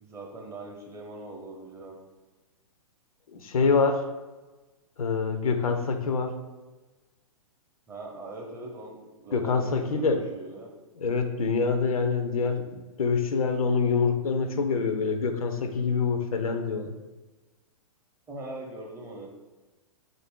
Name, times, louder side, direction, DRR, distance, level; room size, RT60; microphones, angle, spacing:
voice 1, 0.0-2.0 7.9-10.7 18.3-19.3, right 2 dB, 15° right, 0 dB, 0.6 m, -41 dB
voice 2, 3.3-4.0 5.0-6.4 9.3-10.2 11.0-16.9, left 5 dB, 80° left, 7 dB, 0.5 m, -26 dB
3.8 x 2.5 x 3.5 m, 1.2 s
hypercardioid pair, 115°, 18 cm